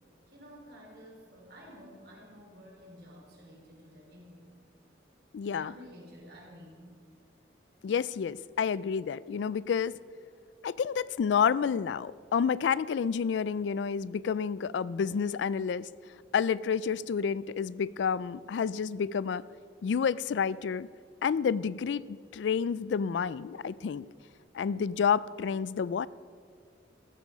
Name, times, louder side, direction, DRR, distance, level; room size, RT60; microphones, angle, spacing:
voice 1, 0.3-4.5 5.5-7.0, equal, 60° right, -1 dB, 4.0 m, -51 dB
voice 2, 5.3-5.7 7.8-9.9 10.6-15.9 16.3-19.4 19.8-20.9 21.2-24.1 24.5-26.1, left 6 dB, 75° left, 19 dB, 0.3 m, -29 dB
15.5 x 13.0 x 5.1 m, 2.1 s
head